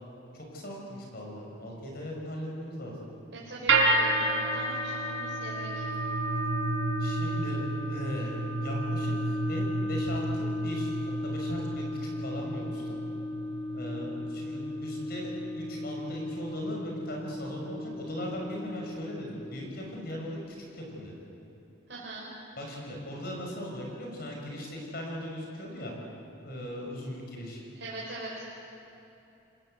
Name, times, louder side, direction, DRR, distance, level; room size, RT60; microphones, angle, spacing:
voice 1, 0.3-3.1 7.0-7.6 7.9-10.9 11.2-12.8 13.7-21.2 22.6-25.9 26.4-27.6, equal, 50° left, 0 dB, 6.4 m, -38 dB
voice 2, 3.3-5.8 21.9-22.3 27.8-28.5, right 2 dB, 60° right, -7 dB, 5.2 m, -41 dB
sound 1, 3.7-19.9, right 1 dB, 75° right, 4.1 m, -31 dB
28.0 x 20.5 x 8.1 m, 3.0 s
head